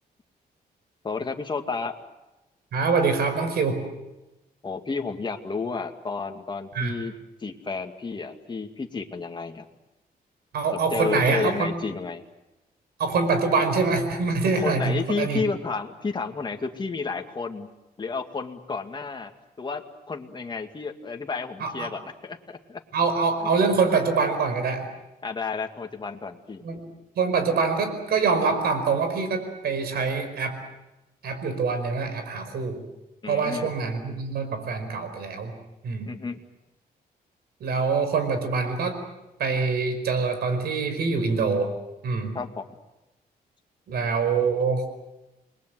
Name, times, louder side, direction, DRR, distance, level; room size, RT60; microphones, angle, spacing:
voice 1, 1.0-1.9 4.6-7.1 7.4-9.7 10.9-12.2 14.5-17.7 18.0-19.3 19.6-22.8 25.2-26.6 33.2-33.7 36.0-36.4 42.3-42.6, left 4 dB, 30° left, 4 dB, 2.3 m, -31 dB
voice 2, 2.7-3.8 6.7-7.0 10.5-11.7 13.0-15.4 21.6-21.9 22.9-24.9 26.6-26.8 27.2-30.6 31.2-32.8 33.3-35.5 35.8-36.1 37.6-39.0 39.4-41.7 42.0-42.4 43.9-44.9, right 4 dB, 90° right, 8 dB, 5.2 m, -25 dB
29.0 x 21.5 x 7.9 m, 1.0 s
cardioid pair, 120°, 16 cm